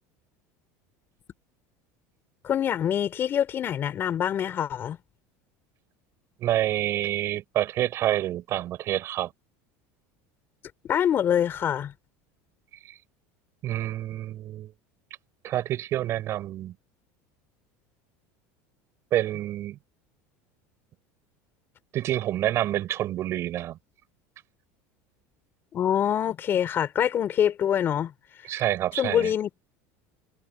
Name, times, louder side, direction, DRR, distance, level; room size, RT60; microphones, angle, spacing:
voice 1, 2.4-5.0 10.9-11.9 25.7-28.1 29.0-29.5, left 9 dB, 30° left, 6.1 m, -25 dB
voice 2, 6.4-9.3 12.8-13.0 13.6-14.7 15.4-16.8 19.1-19.8 21.9-23.8 28.4-29.3, right 13 dB, 40° right, 6.3 m, -28 dB
cardioid pair, 145°, 7 cm